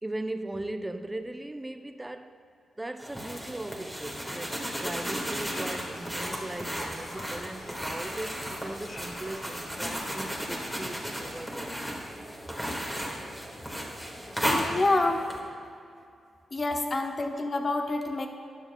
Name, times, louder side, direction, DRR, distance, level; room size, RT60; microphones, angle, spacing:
voice 1, 0.0-2.4 2.8-11.9 16.0-16.1, right 1 dB, 15° right, 8 dB, 0.5 m, -38 dB
sound 1, 3.0-15.4, equal, 5° left, 1.5 m, -34 dB
sound 2, 4.9-11.3, left 1 dB, 80° left, 1.9 m, -49 dB
voice 2, 14.5-15.3 16.5-18.3, left 2 dB, 35° left, 4 dB, 0.9 m, -27 dB
13.0 x 10.0 x 2.2 m, 2.4 s
cardioid pair, 90°, 0 cm